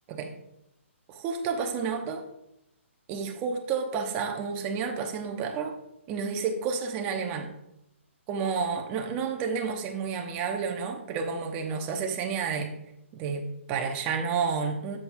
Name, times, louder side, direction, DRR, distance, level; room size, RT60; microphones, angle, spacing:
voice 1, 1.1-2.3 3.1-5.8 6.1-7.5 8.3-12.7 13.1-15.0, right 5 dB, 20° right, 4 dB, 0.9 m, -30 dB
11.0 x 7.4 x 2.7 m, 0.83 s
hypercardioid pair, 160°, 7 cm